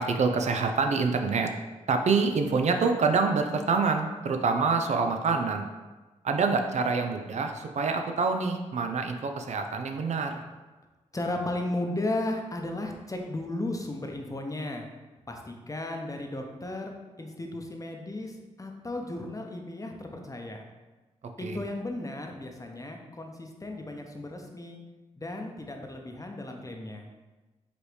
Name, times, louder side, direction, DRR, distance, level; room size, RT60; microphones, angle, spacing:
voice 1, 0.0-1.5 1.9-5.7 6.2-10.4 21.4-21.6, right 4 dB, 60° right, 5 dB, 0.5 m, -26 dB
voice 2, 11.1-14.8 15.3-20.6 21.4-24.8 25.2-27.1, left 1 dB, 25° left, 2 dB, 0.8 m, -35 dB
5.0 x 3.2 x 3.3 m, 1.2 s
supercardioid pair, 40°, 13 cm